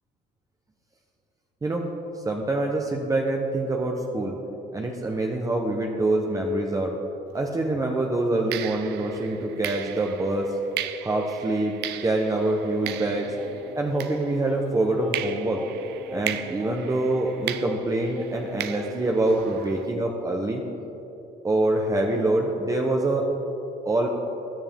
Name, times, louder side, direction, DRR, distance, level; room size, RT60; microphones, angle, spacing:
voice 1, 2.2-4.4 4.7-6.9 7.3-10.5 11.0-11.7 12.0-13.3 13.8-15.6 16.1-20.6 21.4-23.3 23.8-24.1, right 2 dB, 20° right, 1 dB, 1.0 m, -25 dB
sound 1, 7.4-7.6 8.5-14.7 15.1-19.9, right 12 dB, 80° right, 0.6 m, -37 dB
Singing, 12.8-19.6, left 1 dB, 5° right, 2.1 m, -40 dB
16.5 x 11.0 x 3.7 m, 3.0 s
cardioid pair, 110°, 17 cm